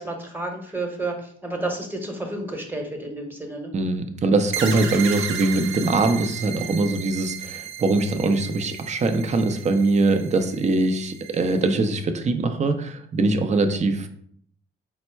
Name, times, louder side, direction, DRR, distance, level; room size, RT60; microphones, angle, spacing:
voice 1, 0.0-3.7, right 2 dB, 10° right, 2 dB, 1.0 m, -31 dB
voice 2, 3.7-14.1, right 3 dB, 35° right, 8 dB, 0.5 m, -22 dB
sound 1, 4.5-11.8, right 8 dB, 80° right, 0.6 m, -35 dB
4.4 x 2.0 x 4.4 m, 0.63 s
cardioid pair, 90°, 20 cm